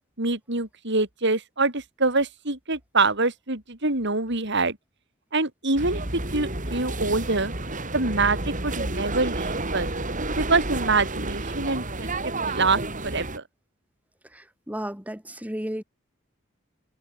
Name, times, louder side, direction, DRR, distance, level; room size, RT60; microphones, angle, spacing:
voice 1, 0.2-4.8 5.3-7.5 7.9-9.9 10.4-12.1 12.4-13.4, right 3 dB, 60° right, 5.3 m, -25 dB
sound 1, 5.8-13.4, right 2 dB, 40° right, 5.6 m, -30 dB
voice 2, 14.3-15.8, equal, 10° right, 4.1 m, -33 dB
head